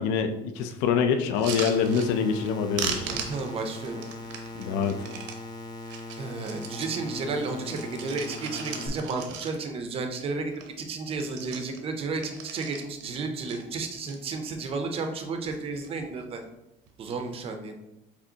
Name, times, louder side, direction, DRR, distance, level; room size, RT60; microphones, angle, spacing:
voice 1, 0.0-3.1 4.5-5.1, left 6 dB, 80° left, 7 dB, 0.5 m, -25 dB
sound 1, 1.3-2.5 2.8-5.4 5.8-7.0 7.4-9.8 10.2-10.3 10.5-10.8 11.1-13.1 13.5-14.2 14.7-15.2 15.5-16.0 16.9-17.2, right 7 dB, 75° right, 0.7 m, -38 dB
sound 2, 1.5-8.9, left 2 dB, 20° left, 0.5 m, -40 dB
voice 2, 3.0-4.0 6.1-16.4 17.0-17.7, right 3 dB, 30° right, 5 dB, 0.5 m, -32 dB
5.0 x 3.4 x 2.7 m, 0.92 s
cardioid pair, 165°, 20 cm